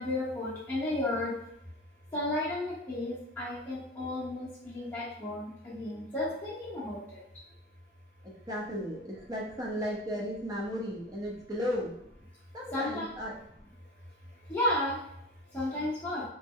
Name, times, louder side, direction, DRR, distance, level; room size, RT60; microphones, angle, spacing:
voice 1, 0.0-1.3 2.1-7.0 12.7-13.1 14.5-15.0 15.5-16.2, left 1 dB, 15° left, -12 dB, 0.8 m, -33 dB
voice 2, 8.2-11.9 12.5-13.4, equal, 20° right, -4 dB, 0.7 m, -35 dB
3.0 x 2.1 x 3.6 m, 0.75 s
head